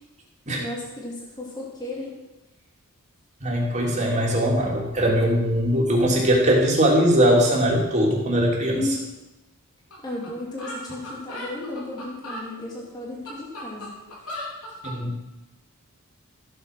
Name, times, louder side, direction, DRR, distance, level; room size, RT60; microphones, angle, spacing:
voice 1, 0.5-2.2 8.7-9.1 10.0-13.9, left 2 dB, 20° left, -4 dB, 2.3 m, -33 dB
voice 2, 3.4-8.8 14.8-15.2, equal, 30° right, -2 dB, 3.1 m, -20 dB
sound 1, 9.9-10.0 10.2-10.3 10.6-12.5 13.0-15.0, left 1 dB, 80° left, 4.2 m, -36 dB
14.5 x 8.4 x 6.1 m, 1.0 s
head